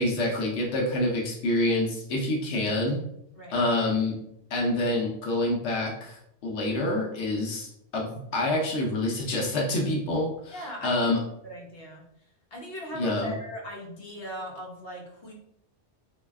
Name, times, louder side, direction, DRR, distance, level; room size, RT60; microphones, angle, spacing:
voice 1, 0.0-3.0 3.5-4.2 4.5-11.2 12.9-13.3, left 1 dB, 90° left, -1 dB, 1.0 m, -27 dB
voice 2, 10.5-11.2 11.4-15.3, equal, 60° left, -2 dB, 1.1 m, -39 dB
3.1 x 2.7 x 3.4 m, 0.77 s
omnidirectional pair, 1.1 m